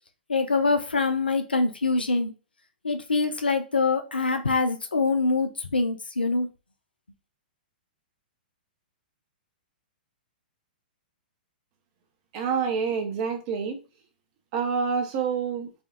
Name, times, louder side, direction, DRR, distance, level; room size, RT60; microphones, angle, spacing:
voice 1, 0.3-2.3 2.8-6.5, left 3 dB, 80° left, 0.6 m, -24 dB
voice 2, 12.3-13.8 14.5-15.7, right 6 dB, 40° right, 0.7 m, -27 dB
3.6 x 2.3 x 2.5 m
figure-of-eight pair, 110°, 5 cm